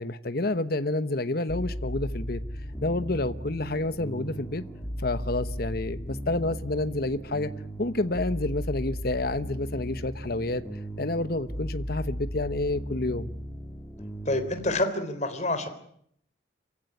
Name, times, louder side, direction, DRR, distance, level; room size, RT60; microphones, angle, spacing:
voice 1, 0.0-2.4 2.8-4.6 5.0-7.5 7.8-10.6 11.0-13.3, left 2 dB, 50° left, 1.1 m, -29 dB
sound 1, 1.5-14.8, equal, 15° left, 2.4 m, -36 dB
voice 2, 14.3-15.7, left 2 dB, 35° left, 3.7 m, -27 dB
27.0 x 16.0 x 9.8 m
head